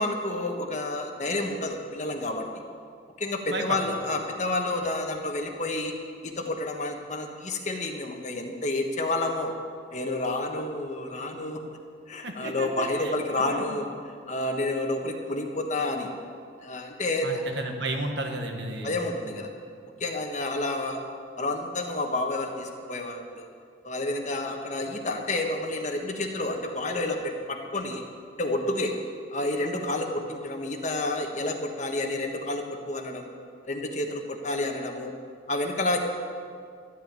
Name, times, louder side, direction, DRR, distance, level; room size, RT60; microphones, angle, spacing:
voice 1, 0.0-2.5 3.2-5.9 6.2-9.5 9.9-11.6 12.1-13.9 14.3-16.1 16.6-17.4 18.8-19.5 20.0-21.0 21.4-23.5 23.8-28.0 28.4-28.9 29.3-33.3 33.6-35.1 35.5-36.0, left 2 dB, 35° left, 3 dB, 1.4 m, -29 dB
voice 2, 3.5-3.8 12.2-13.1 13.5-13.6 17.2-18.9, right 2 dB, 65° right, 3 dB, 1.6 m, -33 dB
13.0 x 9.2 x 9.0 m, 2.2 s
head